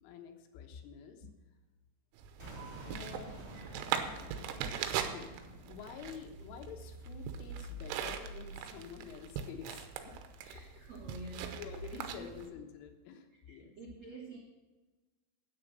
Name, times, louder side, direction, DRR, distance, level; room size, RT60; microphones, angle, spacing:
voice 1, 0.0-1.3 2.9-3.4 5.0-5.3 5.7-10.2 11.5-13.8, left 7 dB, 85° left, 5 dB, 3.7 m, -48 dB
sound 1, 2.2-12.5, right 9 dB, 85° right, 3.3 m, -41 dB
sound 2, 2.4-8.2, right 1 dB, 15° right, 3.7 m, -51 dB
sound 3, 5.5-5.8 6.4-9.2 9.6-12.0, right 1 dB, 35° right, 4.5 m, -48 dB
voice 2, 10.4-11.6 12.1-12.3 13.5-14.4, right 2 dB, 65° right, -3 dB, 1.7 m, -48 dB
9.5 x 9.0 x 6.6 m, 1.2 s
omnidirectional pair, 5.5 m